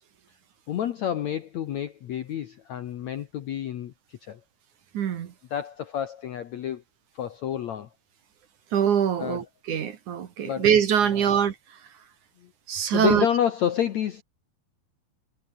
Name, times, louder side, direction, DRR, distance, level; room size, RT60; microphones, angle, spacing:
voice 1, 0.7-4.4 5.5-6.8 7.1-7.9 9.2-9.4 10.4-10.7 11.1-11.4 12.4-12.5 12.9-14.2, left 10 dB, 65° left, 1.8 m, -29 dB
voice 2, 4.9-5.3 8.7-11.8 12.7-13.3, right 8 dB, 60° right, 2.7 m, -23 dB
omnidirectional pair, 4.7 m